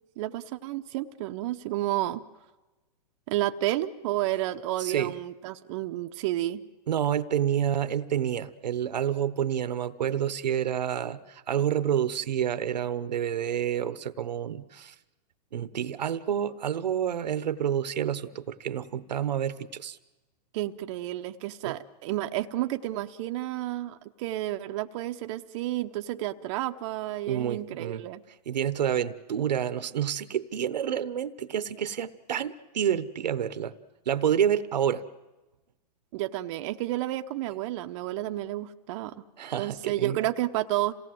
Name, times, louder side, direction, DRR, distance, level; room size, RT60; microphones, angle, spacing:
voice 1, 0.2-2.2 3.3-6.6 20.5-28.2 36.1-39.2 39.6-40.9, right 15 dB, 45° right, 6 dB, 0.8 m, -31 dB
voice 2, 4.8-5.1 6.9-14.9 15.5-20.0 21.6-21.8 27.3-28.0 28.5-33.7 34.1-35.0 39.4-40.2, right 9 dB, 85° right, 14 dB, 1.0 m, -28 dB
27.5 x 17.5 x 7.7 m, 1.1 s
hypercardioid pair, 135°, 21 cm